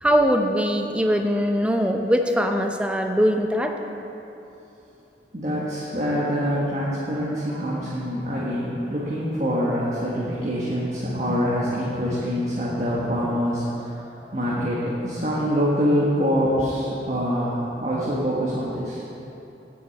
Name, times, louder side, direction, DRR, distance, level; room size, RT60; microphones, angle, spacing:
voice 1, 0.0-3.7, equal, 5° right, 4 dB, 0.6 m, -21 dB
voice 2, 5.3-19.0, equal, 40° right, -7 dB, 1.5 m, -25 dB
8.6 x 7.1 x 8.7 m, 3.0 s
head